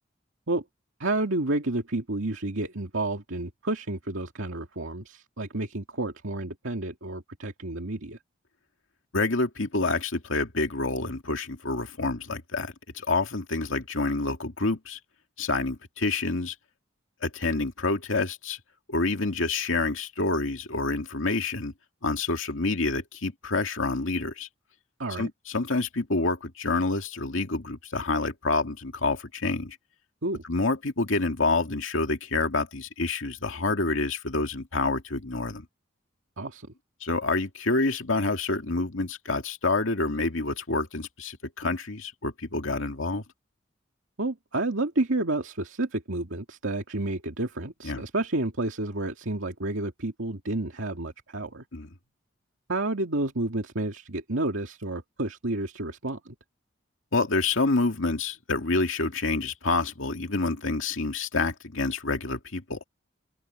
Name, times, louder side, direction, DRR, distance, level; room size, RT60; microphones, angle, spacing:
voice 1, 1.0-8.2 25.0-25.3 30.2-30.4 36.4-36.7 44.2-51.6 52.7-56.3, right 2 dB, 85° right, 2.3 m, -30 dB
voice 2, 9.1-15.0 15.4-16.5 17.2-18.6 18.9-21.7 22.0-24.5 25.2-29.8 30.5-35.6 37.0-43.2 47.8-48.0 51.7-51.9 57.1-62.8, left 3 dB, 85° left, 2.3 m, -28 dB
open air
head